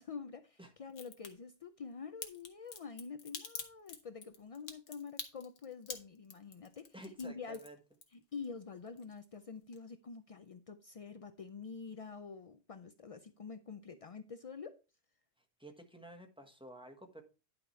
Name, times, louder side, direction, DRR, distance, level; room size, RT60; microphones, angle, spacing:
voice 1, 0.0-6.9 7.2-7.6 8.1-14.8, left 5 dB, 65° left, 0.3 m, -47 dB
Crack, 0.9-1.3 2.2-8.5 8.8-9.4 9.7-9.8, left 5 dB, 85° left, 1.6 m, -46 dB
voice 2, 6.9-7.8 15.6-17.2, equal, 5° right, 1.3 m, -51 dB
10.5 x 5.2 x 4.4 m
omnidirectional pair, 1.3 m